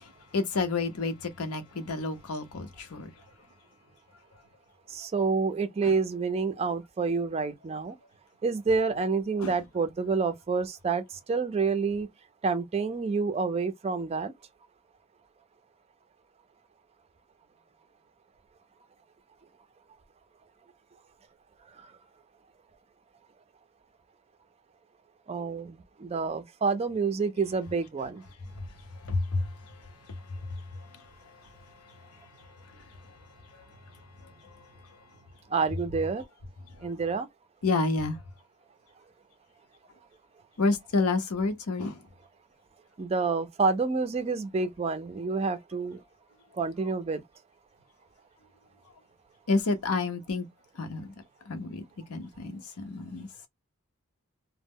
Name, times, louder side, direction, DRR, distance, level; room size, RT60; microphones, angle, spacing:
voice 1, 0.0-3.2 5.8-5.9 9.4-9.6 28.5-35.1 36.7-36.9 37.6-38.2 40.6-42.0 49.5-50.5 50.7-51.8 52.1-53.5, left 3 dB, 85° left, 0.7 m, -32 dB
voice 2, 4.9-7.9 8.4-12.1 12.4-14.3 25.3-28.2 35.5-36.2 36.8-37.3 43.0-46.0 46.5-47.2, right 4 dB, 30° right, 0.4 m, -28 dB
2.0 x 2.0 x 3.5 m
head